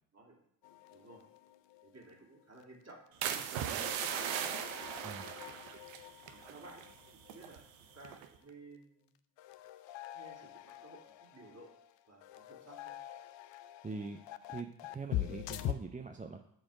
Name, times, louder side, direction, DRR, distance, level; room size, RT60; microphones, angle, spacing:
sound 1, 0.6-2.1 2.4-2.6 2.9-3.0 3.6-7.6 8.0-8.1 9.4-15.7, left 14 dB, 70° left, 0.6 m, -44 dB
voice 1, 0.9-1.2 1.8-4.5 5.2-5.6 6.3-6.8 7.1-9.1 10.1-11.7 12.1-12.9, right 2 dB, 35° right, -1 dB, 2.8 m, -56 dB
sound 2, 3.2-7.0 7.2-7.6 8.0-8.4, right 9 dB, 80° right, 0.8 m, -38 dB
voice 2, 13.8-14.2 14.5-16.4, right 4 dB, 15° right, 5 dB, 0.6 m, -43 dB
7.8 x 4.2 x 6.2 m, 0.72 s
hypercardioid pair, 40°, 46 cm